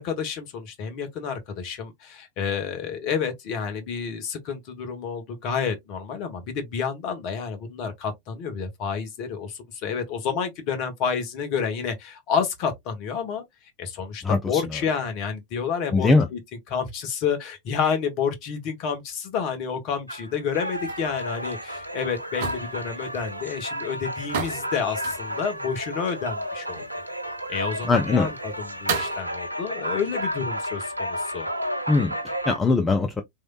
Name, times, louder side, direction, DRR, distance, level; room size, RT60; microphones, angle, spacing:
voice 1, 0.0-13.4 13.8-16.4 16.7-26.8 27.5-31.5, left 6 dB, 40° left, 1.0 m, -29 dB
voice 2, 14.2-14.6 15.9-16.3 27.8-28.3 31.9-33.2, left 3 dB, 15° left, 0.4 m, -21 dB
sound 1, 20.1-32.6, equal, 85° right, 0.4 m, -32 dB
sound 2, 20.5-29.2, right 5 dB, 55° right, 0.7 m, -37 dB
3.1 x 2.8 x 2.3 m
figure-of-eight pair, 90°, 0 cm